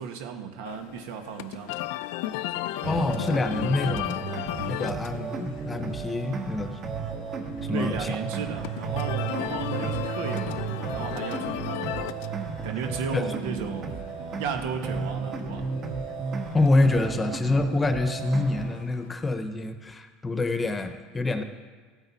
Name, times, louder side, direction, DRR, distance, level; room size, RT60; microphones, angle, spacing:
voice 1, 0.0-1.7 7.7-12.1 12.4-15.7, right 7 dB, 80° right, 5 dB, 1.3 m, -35 dB
sound 1, 0.6-19.1, left 14 dB, 75° left, 0.4 m, -37 dB
voice 2, 2.8-4.2 4.6-7.1 7.7-8.2 13.1-13.2 16.5-21.4, left 2 dB, 15° left, 8 dB, 1.0 m, -26 dB
sound 2, 2.8-18.8, right 5 dB, 35° right, 1.4 m, -33 dB
15.5 x 9.0 x 4.1 m, 1.5 s
supercardioid pair, 130°, 0 cm